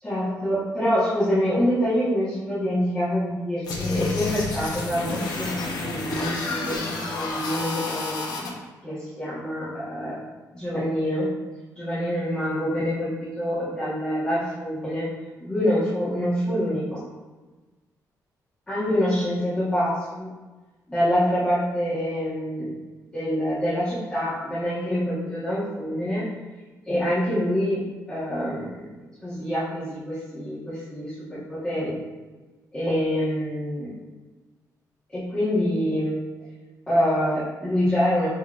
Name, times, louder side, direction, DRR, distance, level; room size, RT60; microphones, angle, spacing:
voice 1, 0.0-10.2 10.5-11.3 11.8-15.1 15.4-17.0 18.7-20.3 20.9-22.8 23.1-26.3 26.8-28.9 29.2-31.9 32.7-34.0 35.1-36.2 36.9-38.3, equal, 15° left, -15 dB, 1.2 m, -26 dB
sound 1, 3.6-8.5, left 3 dB, 90° left, 0.7 m, -30 dB
5.8 x 3.1 x 2.4 m, 1.2 s
wide cardioid pair, 180°, 7 cm